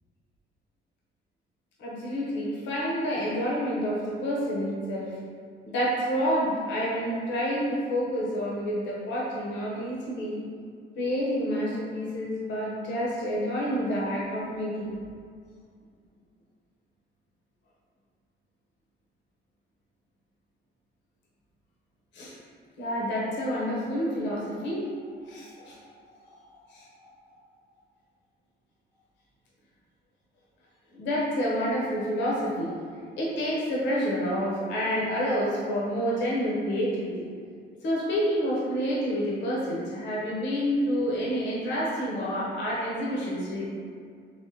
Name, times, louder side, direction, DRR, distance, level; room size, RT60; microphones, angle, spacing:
voice 1, 1.8-5.1 5.7-10.4 11.0-14.9 22.1-22.4 22.8-24.9 25.2-25.8 26.2-26.3 26.7-26.9 30.9-32.7 33.2-37.1 37.8-43.7, equal, 75° left, -5 dB, 0.8 m, -28 dB
3.5 x 3.0 x 2.7 m, 2.1 s
cardioid pair, 125°, 19 cm